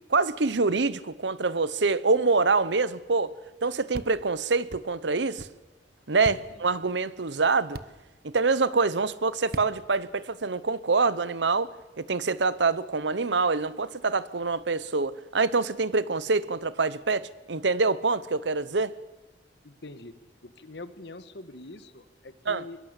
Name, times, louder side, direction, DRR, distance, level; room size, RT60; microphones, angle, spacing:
voice 1, 0.1-3.3 3.6-5.5 6.1-7.8 8.2-11.7 12.0-18.9 22.5-22.6, right 4 dB, 75° right, 0.9 m, -25 dB
sound 1, 3.9-4.1 4.7-4.8 5.4-5.5 6.2-6.4 7.7-7.9 9.5-9.7, right 2 dB, 55° right, 1.1 m, -37 dB
voice 2, 19.6-22.8, left 2 dB, 70° left, 1.6 m, -44 dB
22.5 x 21.5 x 8.3 m
head